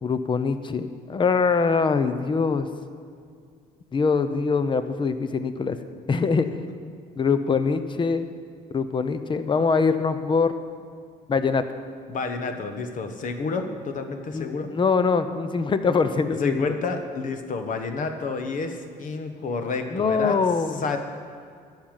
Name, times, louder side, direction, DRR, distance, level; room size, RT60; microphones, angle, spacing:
voice 1, 0.0-2.7 3.9-5.8 6.1-6.5 7.2-8.3 8.7-10.5 11.3-11.6 14.3-16.7 19.9-20.8, left 5 dB, 30° left, 11 dB, 0.8 m, -23 dB
voice 2, 12.1-14.7 16.4-20.4 20.8-21.0, left 4 dB, 50° left, 7 dB, 1.2 m, -29 dB
12.5 x 5.7 x 9.0 m, 2.2 s
cardioid pair, 110°, 17 cm